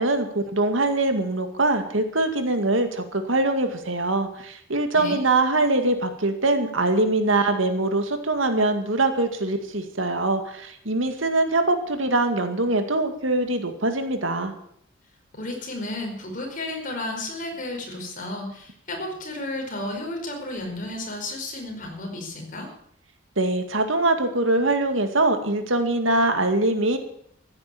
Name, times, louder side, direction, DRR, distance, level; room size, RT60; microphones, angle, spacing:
voice 1, 0.0-14.5 23.4-27.0, right 2 dB, 90° right, 7 dB, 2.1 m, -23 dB
voice 2, 15.3-22.7, left 1 dB, 45° left, 2 dB, 4.8 m, -32 dB
14.5 x 9.6 x 8.6 m, 0.68 s
head